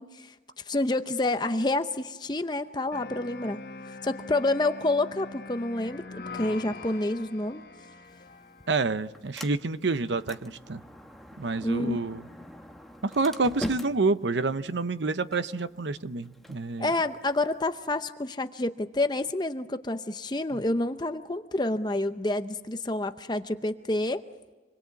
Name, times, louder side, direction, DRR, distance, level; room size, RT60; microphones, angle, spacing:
voice 1, 0.0-3.6 3.9-7.7 11.6-12.1 16.8-24.2, left 2 dB, 25° left, 0.7 m, -28 dB
sound 1, 2.9-8.9, left 3 dB, 60° left, 1.3 m, -43 dB
Sliding door, 8.0-18.0, equal, ahead, 1.1 m, -44 dB
voice 2, 8.7-10.8 11.4-12.3 13.0-16.9, right 3 dB, 85° right, 0.8 m, -28 dB
27.0 x 21.5 x 8.4 m
head